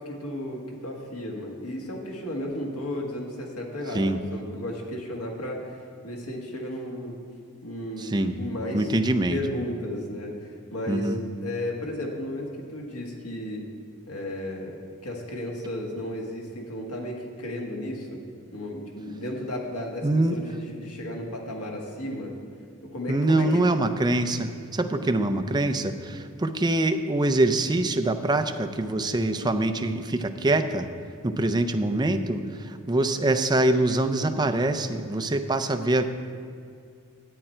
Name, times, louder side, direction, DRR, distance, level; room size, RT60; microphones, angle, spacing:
voice 1, 0.0-7.2 7.6-11.1 11.4-13.6 14.1-18.2 18.5-22.3 22.8-23.9 25.2-25.3, left 1 dB, 80° left, 0 dB, 1.7 m, -34 dB
voice 2, 8.0-8.4 8.7-9.4 10.9-11.2 20.0-20.4 23.1-30.9 31.2-36.0, right 2 dB, 20° right, 7 dB, 0.5 m, -24 dB
11.0 x 8.6 x 4.5 m, 2.4 s
head